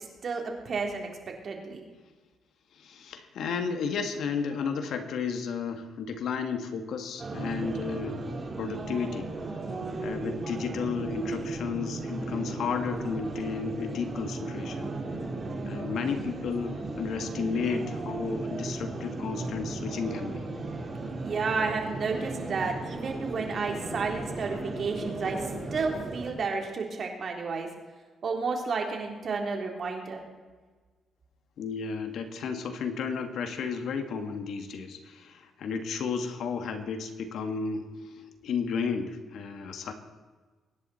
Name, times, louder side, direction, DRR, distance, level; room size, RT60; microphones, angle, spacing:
voice 1, 0.2-1.8 21.2-25.4 25.7-27.7 28.2-30.2, right 4 dB, 55° right, 2 dB, 3.7 m, -31 dB
voice 2, 2.7-8.2 8.6-9.3 10.0-14.9 15.7-20.5 31.6-39.9, left 5 dB, 70° left, 7 dB, 1.9 m, -33 dB
sound 1, 7.2-26.3, right 2 dB, 35° right, 4.3 m, -36 dB
24.0 x 10.5 x 4.4 m, 1.4 s
cardioid pair, 75°, 0 cm